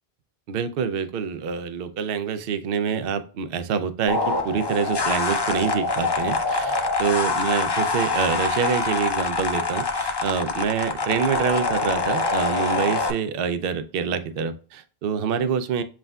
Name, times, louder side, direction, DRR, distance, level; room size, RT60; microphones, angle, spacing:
voice 1, 0.5-15.8, right 6 dB, 65° right, 11 dB, 0.7 m, -26 dB
sound 1, 4.1-13.1, left 3 dB, 30° left, 0.5 m, -25 dB
7.4 x 2.5 x 2.2 m, 0.39 s
omnidirectional pair, 1.1 m